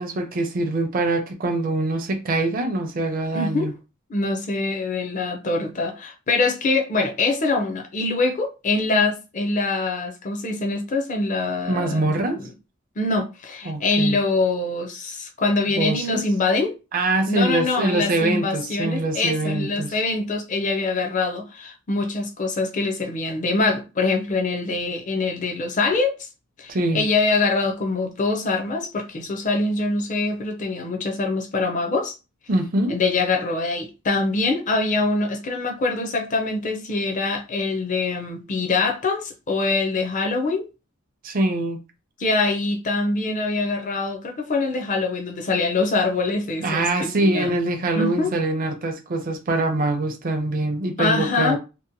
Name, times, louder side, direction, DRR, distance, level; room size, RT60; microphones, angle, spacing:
voice 1, 0.0-3.7 11.7-12.4 13.7-14.2 15.8-16.2 16.9-19.9 26.7-27.1 32.5-33.0 41.2-41.8 46.6-51.6, right 2 dB, 45° right, 0.5 m, -24 dB
voice 2, 3.3-3.7 4.1-12.5 13.0-16.8 17.3-26.2 26.6-32.2 32.9-40.7 42.2-47.6 47.9-48.3 51.0-51.6, left 3 dB, 40° left, 0.5 m, -24 dB
2.8 x 2.1 x 2.6 m
head